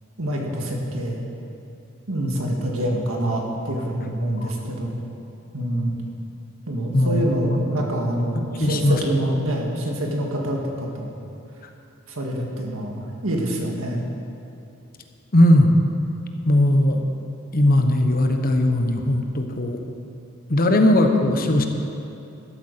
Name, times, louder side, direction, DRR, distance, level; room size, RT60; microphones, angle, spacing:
voice 1, 0.2-1.2 2.1-4.9 5.5-6.0 6.7-11.1 12.1-14.0, right 1 dB, 75° right, 0 dB, 2.0 m, -26 dB
voice 2, 6.9-7.6 8.6-9.0 15.3-15.7 16.5-17.0 17.5-19.8 20.5-21.7, left 1 dB, 45° left, 5 dB, 1.0 m, -18 dB
12.5 x 8.6 x 6.7 m, 2.8 s
head